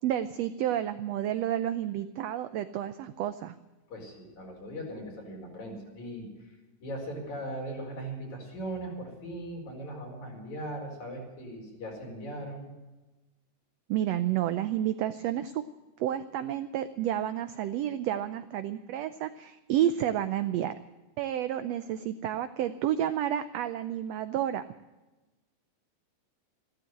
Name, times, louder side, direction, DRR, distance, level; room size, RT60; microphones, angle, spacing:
voice 1, 0.0-3.5 13.9-15.6 16.0-20.7 21.2-24.7, right 11 dB, 85° right, 11 dB, 1.4 m, -30 dB
voice 2, 3.9-6.5 6.8-12.7, right 1 dB, 60° left, 0 dB, 5.9 m, -39 dB
14.5 x 13.0 x 7.7 m, 1.1 s
omnidirectional pair, 3.7 m